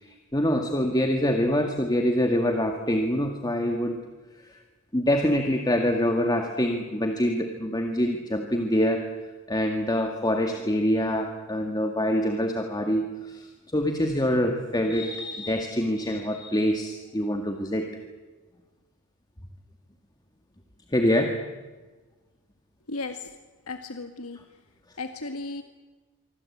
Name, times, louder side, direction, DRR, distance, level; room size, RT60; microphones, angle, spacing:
voice 1, 0.0-4.0 4.5-4.6 4.9-9.1 9.5-17.9 20.9-21.3, equal, 20° left, 4 dB, 2.0 m, -25 dB
voice 2, 22.9-23.3 23.7-24.4 25.0-25.6, left 3 dB, 75° left, 6 dB, 1.7 m, -35 dB
26.0 x 24.5 x 8.6 m, 1.3 s
head